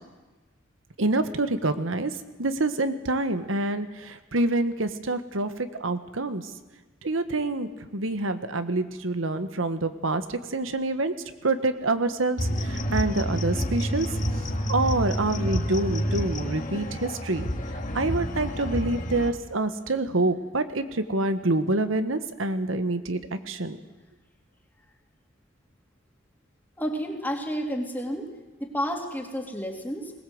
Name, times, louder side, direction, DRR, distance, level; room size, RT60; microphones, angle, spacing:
voice 1, 1.0-2.1 2.4-5.5 5.8-6.4 7.0-11.1 11.4-12.4 12.7-14.1 14.7-17.5 17.9-23.2 23.5-23.8, right 2 dB, 85° right, 10 dB, 1.4 m, -26 dB
sound 1, 12.4-19.3, equal, 40° left, 1.9 m, -29 dB
voice 2, 26.8-28.3 28.6-30.1, equal, 10° left, 2 dB, 2.7 m, -31 dB
21.5 x 20.0 x 8.0 m, 1.2 s
head